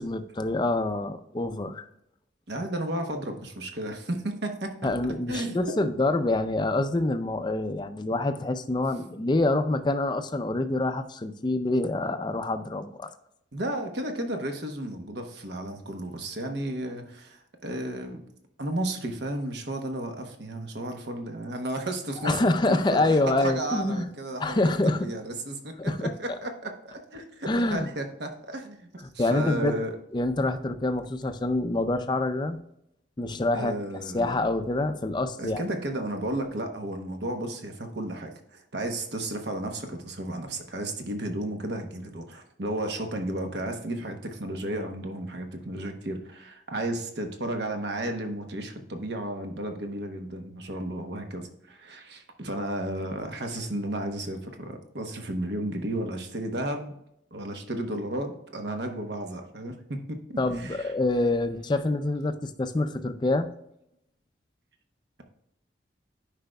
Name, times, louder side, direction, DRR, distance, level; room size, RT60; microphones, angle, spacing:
voice 1, 0.0-1.9 4.8-13.1 22.2-24.1 24.4-25.1 25.8-26.1 27.5-27.9 29.2-29.8 30.1-32.6 33.2-33.7 34.1-35.6 60.4-63.5, left 2 dB, 25° left, 9 dB, 0.4 m, -26 dB
voice 2, 2.5-4.9 5.3-5.6 13.5-18.2 18.6-29.9 33.5-34.3 35.4-56.9 57.3-60.9, right 1 dB, 65° right, 5 dB, 1.0 m, -33 dB
10.0 x 5.0 x 2.2 m, 0.77 s
head